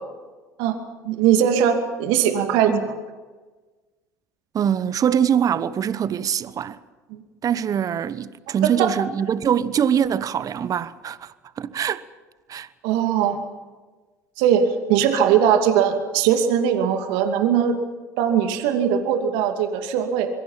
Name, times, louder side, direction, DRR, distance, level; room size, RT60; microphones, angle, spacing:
voice 1, 1.0-2.8 7.1-7.2 8.6-8.9 12.8-13.4 14.4-17.8 18.2-20.3, right 8 dB, 65° right, 2.6 m, -20 dB
voice 2, 4.5-6.8 7.4-11.3 11.6-12.0 12.5-12.7, right 8 dB, 40° right, 1.1 m, -23 dB
26.0 x 23.0 x 5.8 m
hypercardioid pair, 65°, 9 cm